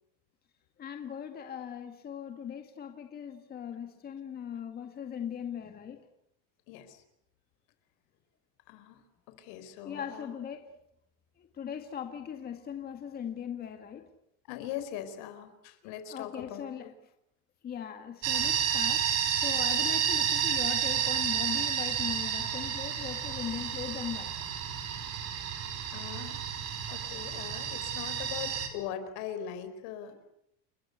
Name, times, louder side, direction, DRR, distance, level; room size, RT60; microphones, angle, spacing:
voice 1, 0.8-6.1 9.8-10.7 11.4-14.0 15.8-16.9 17.6-24.3, left 8 dB, 25° left, 2.0 m, -39 dB
voice 2, 6.7-7.0 8.7-10.3 14.5-16.9 25.3-26.4 26.9-30.3, left 10 dB, 75° left, 4.8 m, -41 dB
sound 1, 18.2-28.7, right 9 dB, 45° right, 4.9 m, -31 dB
29.5 x 23.0 x 8.2 m
cardioid pair, 180°, 35 cm